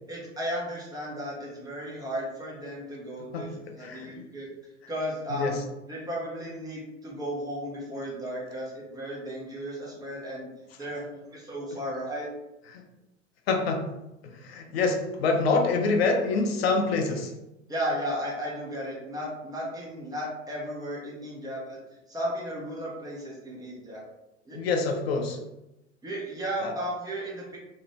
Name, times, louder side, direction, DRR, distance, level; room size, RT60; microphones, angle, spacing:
voice 1, 0.1-4.5 4.9-5.6 5.9-12.3 17.7-21.8 22.1-24.0 24.4-24.6 26.0-27.6, equal, 10° right, -5 dB, 0.5 m, -34 dB
voice 2, 3.8-4.2 5.3-5.6 12.7-12.8 13.5-14.0 14.2-17.3 24.5-25.4 26.6-26.7, left 3 dB, 55° left, 3 dB, 0.4 m, -26 dB
2.5 x 2.1 x 3.0 m, 0.93 s
figure-of-eight pair, 90°, 38 cm